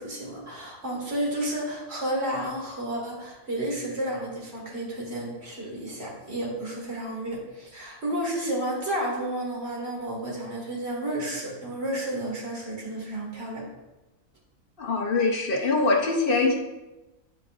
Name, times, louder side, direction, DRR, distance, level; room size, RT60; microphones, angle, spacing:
voice 1, 0.0-13.6, right 1 dB, 50° right, -3 dB, 2.0 m, -31 dB
voice 2, 14.8-16.5, left 3 dB, 45° left, 1 dB, 1.0 m, -23 dB
9.6 x 5.1 x 2.5 m, 1.1 s
omnidirectional pair, 1.4 m